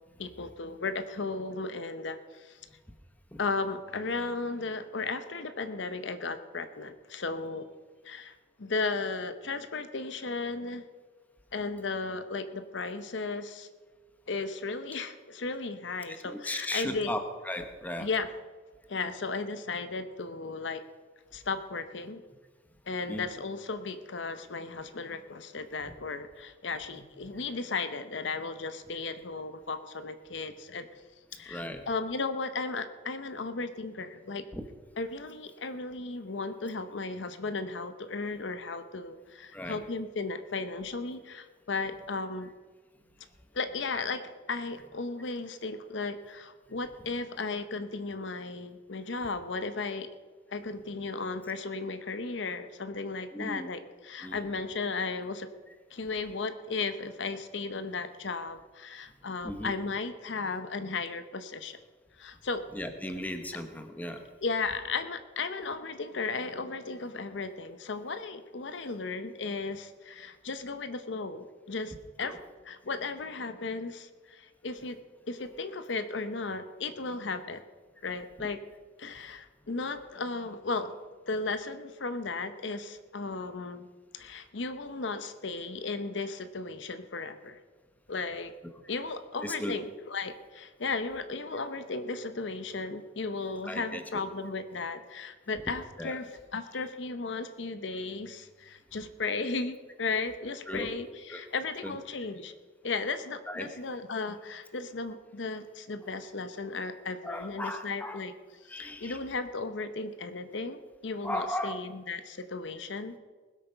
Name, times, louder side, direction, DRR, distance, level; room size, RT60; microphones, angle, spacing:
voice 1, 0.2-2.6 3.4-7.7 8.0-10.8 11.5-13.7 14.3-17.2 18.0-18.3 18.9-20.8 21.3-22.2 22.9-30.9 31.3-34.5 35.0-42.5 43.5-50.1 50.5-55.5 55.9-61.8 62.2-62.6 64.4-72.4 72.6-75.0 75.3-77.6 78.0-78.6 79.0-80.9 81.3-83.9 84.1-87.6 88.1-88.5 88.9-102.5 102.8-108.3 108.6-113.2, left 3 dB, 75° left, 11 dB, 0.8 m, -35 dB
voice 2, 16.1-18.1 23.1-23.3 31.5-31.8 34.5-34.6 39.5-39.8 53.3-53.7 54.2-54.4 59.4-59.7 62.7-64.2 72.2-72.4 89.4-89.8 93.7-94.2 96.0-96.1 100.7-100.9 101.3-101.4 101.8-102.0 103.5-103.7 107.2-108.2 108.7-109.2 111.2-111.8, left 1 dB, 10° left, 6 dB, 1.1 m, -36 dB
19.5 x 8.4 x 5.7 m, 1.4 s
head